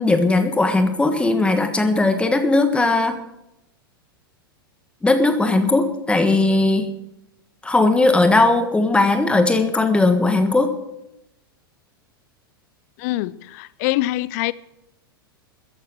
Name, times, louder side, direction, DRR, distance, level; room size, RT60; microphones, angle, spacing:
voice 1, 0.0-3.1 5.0-6.9 7.6-10.7, left 2 dB, 10° left, 1.5 m, -18 dB
voice 2, 13.0-14.5, left 17 dB, 45° left, 0.4 m, -24 dB
14.0 x 11.0 x 6.3 m
figure-of-eight pair, 95°, 12 cm